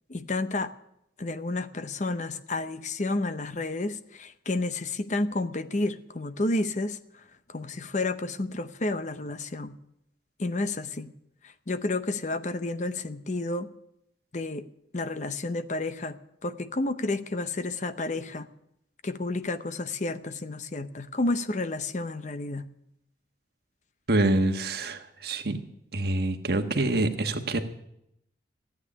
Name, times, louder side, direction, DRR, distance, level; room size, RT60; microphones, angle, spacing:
voice 1, 0.1-0.7 1.2-7.2 7.5-9.8 10.4-11.1 11.4-13.7 14.3-14.7 14.9-18.5 19.0-22.7, left 2 dB, 40° left, 12 dB, 0.8 m, -31 dB
voice 2, 24.1-25.6 25.9-27.6, right 2 dB, 60° right, 7 dB, 1.4 m, -26 dB
14.5 x 8.9 x 9.9 m, 0.78 s
head